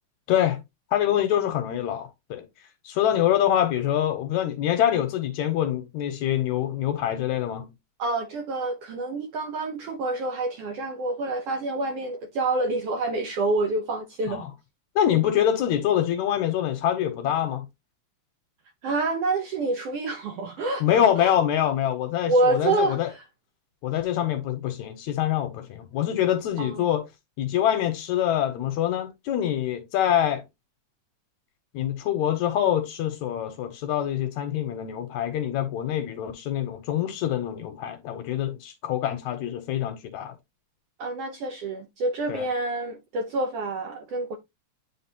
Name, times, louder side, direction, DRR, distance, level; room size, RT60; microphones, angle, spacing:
voice 1, 0.3-0.6 0.9-2.5 2.8-7.7 14.3-14.5 15.0-17.7 20.8-23.1 23.8-27.0 27.4-30.4 31.7-40.3 42.3-42.5, left 11 dB, 75° left, 1.9 m, -25 dB
voice 2, 8.0-14.5 18.8-21.3 22.3-23.2 26.6-26.8 41.0-44.4, right 2 dB, 75° right, 1.4 m, -27 dB
9.5 x 3.8 x 2.8 m
omnidirectional pair, 3.7 m